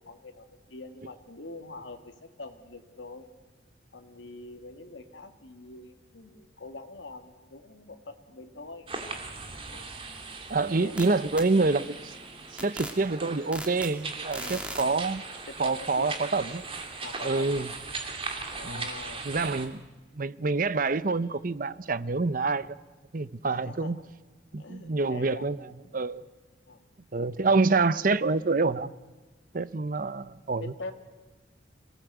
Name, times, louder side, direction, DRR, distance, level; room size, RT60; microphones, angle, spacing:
voice 1, 0.0-2.1 2.4-3.3 3.9-8.9 9.7-9.9 10.8-11.3 14.4-14.7 15.5-16.2 17.0-17.7 18.5-19.3 23.4-24.0 24.6-25.5 26.7-26.9 30.6-30.9, left 3 dB, 85° left, 2.1 m, -44 dB
sound 1, 8.9-19.7, right 4 dB, 30° right, 2.6 m, -39 dB
voice 2, 10.5-12.1 12.6-15.2 15.6-16.5 17.2-17.7 18.6-18.9 19.3-19.8 20.1-22.8 23.1-24.0 24.5-25.6 25.9-26.2 27.1-28.9 29.5-30.7, right 3 dB, 45° right, 0.7 m, -27 dB
sound 2, 10.6-11.0 11.4-17.9, right 1 dB, 5° right, 2.7 m, -44 dB
26.5 x 18.5 x 8.1 m
head